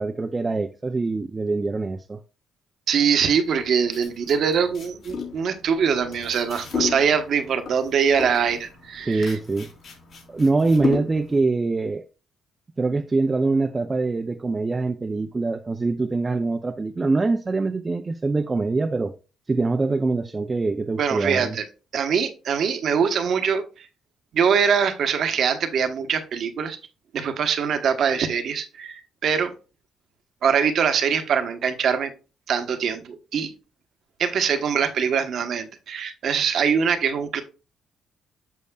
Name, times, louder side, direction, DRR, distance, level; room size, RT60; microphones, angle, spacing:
voice 1, 0.0-2.2 9.1-9.7 10.3-12.0 12.8-19.1 19.5-21.6, right 3 dB, 25° right, 0.5 m, -24 dB
voice 2, 2.9-9.4 21.0-21.6 21.9-23.9 24.3-26.8 27.1-29.5 30.4-32.1 32.5-33.5 34.2-37.4, right 7 dB, 65° right, 1.1 m, -23 dB
sound 1, 3.4-11.4, left 5 dB, 65° left, 3.2 m, -34 dB
8.3 x 6.4 x 2.3 m
cardioid pair, 90°, 0 cm